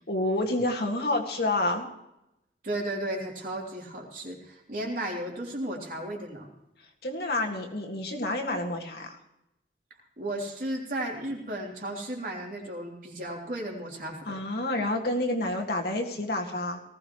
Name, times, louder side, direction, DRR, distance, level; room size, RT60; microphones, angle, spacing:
voice 1, 0.1-1.9 7.0-9.2 14.3-16.8, left 2 dB, 60° left, 1 dB, 2.0 m, -29 dB
voice 2, 2.6-6.5 10.2-14.4, right 1 dB, 50° right, -1 dB, 3.4 m, -34 dB
19.0 x 16.5 x 3.2 m, 0.86 s
head